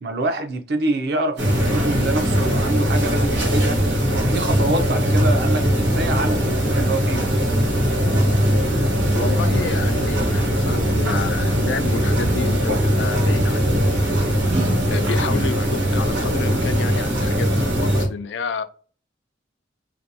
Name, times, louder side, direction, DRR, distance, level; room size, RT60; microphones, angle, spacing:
voice 1, 0.0-3.8 4.1-7.3, right 2 dB, 60° right, 0.4 m, -26 dB
sound 1, 1.4-18.0, equal, 85° right, 1.0 m, -20 dB
sound 2, 4.1-9.7, left 1 dB, 50° left, 0.7 m, -39 dB
voice 2, 9.1-14.3 14.9-18.6, left 5 dB, 80° left, 0.3 m, -30 dB
2.5 x 2.1 x 2.7 m
head